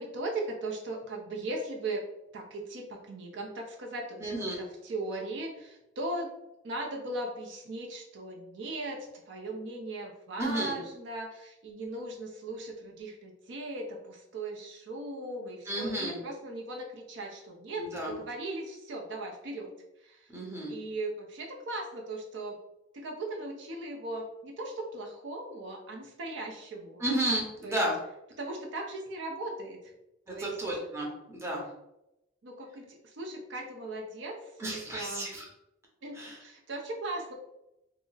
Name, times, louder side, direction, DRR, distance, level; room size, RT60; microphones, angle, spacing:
voice 1, 0.0-2.0 2.3-6.3 6.6-19.7 20.0-20.3 20.7-22.6 22.9-27.1 27.6-27.8 28.4-29.8 30.3-30.6 32.4-35.3 36.0-37.3, right 2 dB, 65° right, 0 dB, 0.5 m, -38 dB
voice 2, 4.2-4.6 10.4-10.8 15.7-16.2 17.8-18.1 20.3-20.7 27.0-27.9 30.3-31.6 34.6-35.5 36.2-36.4, right 1 dB, 15° right, -3 dB, 0.7 m, -32 dB
2.3 x 2.0 x 3.8 m, 0.87 s
head